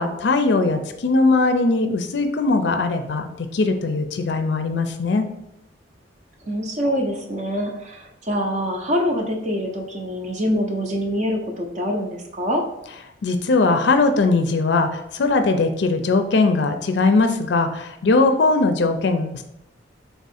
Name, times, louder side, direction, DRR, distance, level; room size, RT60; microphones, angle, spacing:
voice 1, 0.0-5.3 13.2-19.4, left 3 dB, 65° left, 7 dB, 0.4 m, -20 dB
voice 2, 6.5-12.6, equal, 40° right, 1 dB, 0.5 m, -25 dB
3.5 x 3.5 x 4.2 m, 0.83 s
head